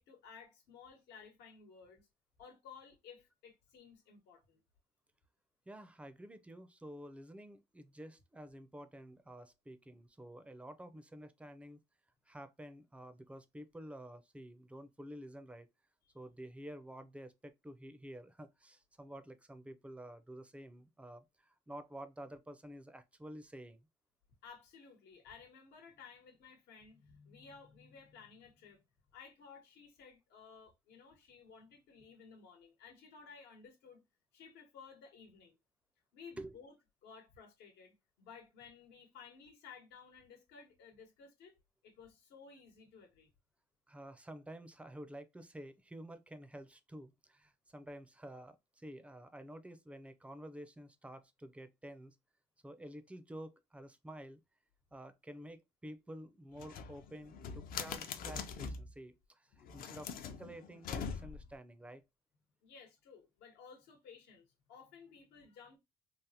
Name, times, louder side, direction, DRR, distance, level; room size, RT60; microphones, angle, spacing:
voice 1, 0.0-2.1 2.4-4.6 16.1-16.2 24.4-28.8 29.1-34.0 34.3-35.6 36.1-36.7 37.0-41.5 41.8-43.3 62.6-65.8, left 6 dB, 80° left, 1.1 m, -56 dB
voice 2, 5.7-11.8 12.3-15.7 16.1-23.9 36.4-36.6 43.9-52.2 52.6-54.4 54.9-62.0, right 1 dB, 5° right, 0.4 m, -50 dB
sound 1, 56.6-58.9 59.6-61.6, left 6 dB, 60° left, 0.5 m, -43 dB
3.4 x 2.0 x 2.7 m
cardioid pair, 110°, 17 cm